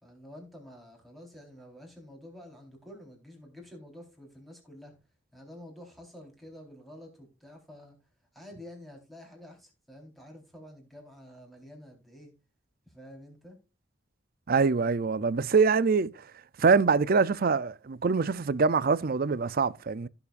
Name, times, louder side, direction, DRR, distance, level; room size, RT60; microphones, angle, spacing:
voice 1, 0.0-5.0 5.3-8.0 8.3-12.3 12.9-13.6, left 1 dB, ahead, 4.1 m, -49 dB
voice 2, 14.5-16.1 16.6-20.1, right 5 dB, 50° right, 0.5 m, -24 dB
16.5 x 7.1 x 2.5 m
head